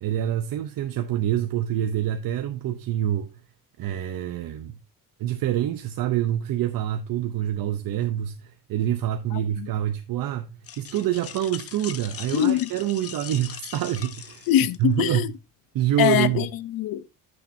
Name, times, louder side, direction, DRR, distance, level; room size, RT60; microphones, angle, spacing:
voice 1, 0.0-3.3 3.8-4.8 5.2-14.5 14.8-15.3 15.7-16.5, right 11 dB, 75° right, 0.8 m, -26 dB
voice 2, 9.3-9.7 12.3-12.7 14.5-15.3 16.0-17.2, left 12 dB, 90° left, 0.7 m, -23 dB
sound 1, 10.6-15.1, left 9 dB, 45° left, 0.8 m, -40 dB
13.0 x 6.7 x 2.7 m
cardioid pair, 160°, 34 cm